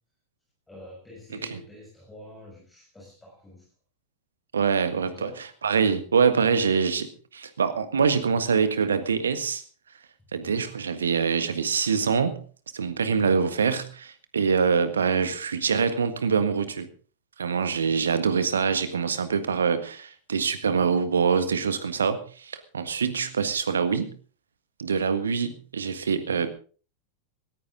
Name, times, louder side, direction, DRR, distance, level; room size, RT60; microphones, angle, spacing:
voice 1, 0.7-3.7 5.1-5.4 10.4-10.7 17.8-18.1, left 1 dB, 10° left, -4 dB, 6.6 m, -47 dB
voice 2, 4.5-5.3 5.6-9.6 10.3-12.4 12.7-16.9 17.4-24.1 24.8-26.5, right 6 dB, 70° right, 11 dB, 1.6 m, -24 dB
18.5 x 14.5 x 3.9 m, 0.39 s
figure-of-eight pair, 90°, 0 cm